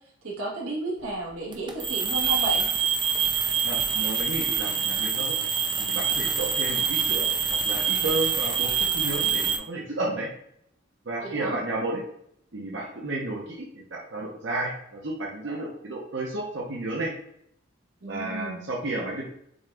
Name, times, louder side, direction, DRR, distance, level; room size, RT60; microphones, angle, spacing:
voice 1, 0.2-2.7 11.2-11.6 18.0-18.7, right 1 dB, 90° right, -2 dB, 1.4 m, -32 dB
sound 1, 1.5-9.6, right 6 dB, 20° right, 0.3 m, -25 dB
voice 2, 3.6-5.4 5.8-7.3 7.6-10.3 11.0-12.0 12.5-17.1 18.1-19.2, right 2 dB, 60° right, -3 dB, 0.8 m, -32 dB
6.3 x 2.4 x 3.3 m, 0.72 s
head